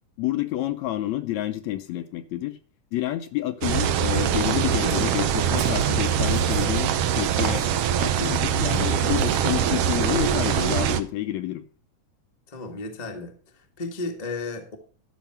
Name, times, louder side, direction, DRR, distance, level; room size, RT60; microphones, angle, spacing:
voice 1, 0.2-2.6 2.9-7.7 8.0-11.6, left 14 dB, 75° left, 1.9 m, -29 dB
sound 1, 3.6-11.0, right 9 dB, 80° right, 1.4 m, -23 dB
sound 2, 4.8-9.5, right 5 dB, 55° right, 2.4 m, -36 dB
voice 2, 12.5-14.8, left 3 dB, 30° left, 0.7 m, -34 dB
12.5 x 6.0 x 5.7 m
omnidirectional pair, 3.6 m